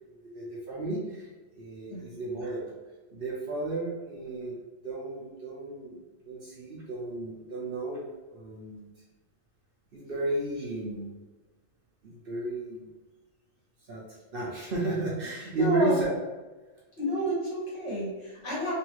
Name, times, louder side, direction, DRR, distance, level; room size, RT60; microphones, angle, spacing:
voice 1, 0.2-1.3 1.5-2.7 3.1-4.6 4.8-8.9 9.9-11.0 12.0-12.9 13.9-14.0 14.3-16.2, right 2 dB, 55° right, -4 dB, 0.8 m, -33 dB
voice 2, 15.5-16.0 17.0-18.7, equal, 60° left, -7 dB, 1.6 m, -29 dB
3.2 x 2.6 x 3.0 m, 1.2 s
omnidirectional pair, 1.3 m